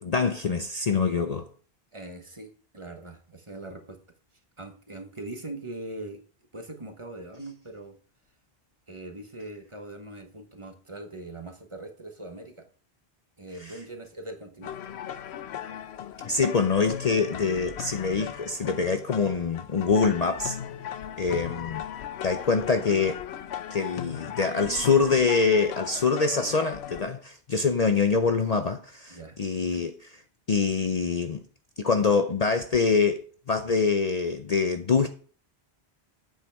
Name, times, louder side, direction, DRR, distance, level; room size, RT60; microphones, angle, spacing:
voice 1, 0.0-1.5 13.7-13.8 16.2-20.6 21.2-21.8 22.2-23.2 23.7-30.2 30.5-31.4 31.8-35.1, left 4 dB, 45° left, 0.6 m, -25 dB
voice 2, 1.9-4.0 4.6-6.2 6.5-8.0 8.9-12.6 13.4-14.9 21.3-21.6 29.1-29.4, right 2 dB, 30° right, 1.3 m, -41 dB
sound 1, 14.6-27.0, left 10 dB, 85° left, 0.9 m, -37 dB
9.1 x 7.9 x 3.5 m
omnidirectional pair, 1.1 m